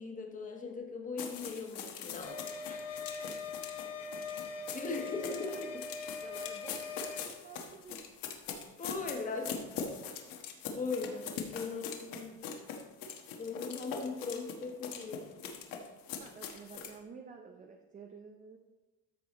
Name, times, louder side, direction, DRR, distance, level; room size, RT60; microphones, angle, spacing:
voice 1, 0.0-2.8 3.2-3.3 4.7-5.7 8.8-9.9 10.7-12.3 13.4-15.3 15.7-15.9, left 4 dB, 20° left, 2 dB, 1.3 m, -39 dB
sound 1, 1.2-17.0, left 6 dB, 55° left, 1.4 m, -42 dB
sound 2, 2.2-7.3, left 5 dB, 40° left, 0.9 m, -42 dB
voice 2, 6.2-8.0 8.9-10.2 11.3-11.5 16.2-18.6, right 5 dB, 20° right, 3 dB, 0.5 m, -51 dB
13.5 x 4.8 x 4.1 m, 1.2 s
cardioid pair, 150°, 40 cm